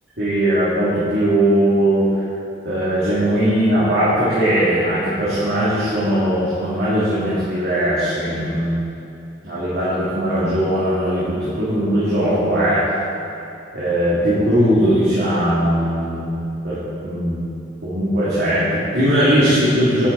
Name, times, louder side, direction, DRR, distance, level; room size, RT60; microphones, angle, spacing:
voice 1, 0.2-2.2 2.6-8.8 9.4-13.0 13.7-16.4 16.6-17.4 17.8-20.1, equal, 65° right, -11 dB, 2.8 m, -19 dB
10.5 x 10.5 x 4.2 m, 2.7 s
head